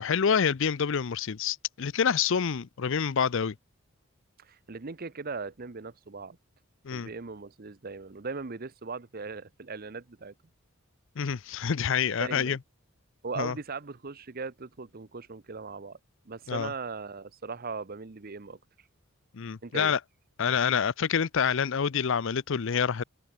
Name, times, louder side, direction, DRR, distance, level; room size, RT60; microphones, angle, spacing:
voice 1, 0.0-3.5 6.8-7.1 11.2-12.6 13.4-13.5 16.5-16.7 19.3-20.0 20.4-23.0, left 7 dB, 60° left, 0.5 m, -27 dB
voice 2, 4.4-6.4 6.9-10.3 12.2-12.6 13.2-16.0 16.2-18.6 19.6-19.9, right 4 dB, 45° right, 0.8 m, -39 dB
head